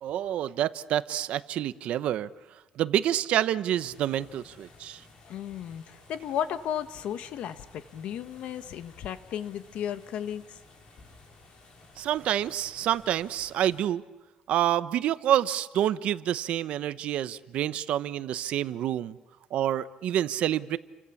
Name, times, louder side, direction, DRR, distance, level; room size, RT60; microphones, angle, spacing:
voice 1, 0.0-5.0 12.0-14.0 14.5-19.2 19.5-20.8, right 11 dB, 65° right, 14 dB, 0.9 m, -28 dB
sound 1, 3.7-13.8, left 3 dB, 45° left, 6.6 m, -55 dB
voice 2, 5.3-10.6, left 9 dB, 65° left, 11 dB, 1.3 m, -34 dB
29.5 x 25.0 x 7.2 m, 1.1 s
cardioid pair, 160°, 2 cm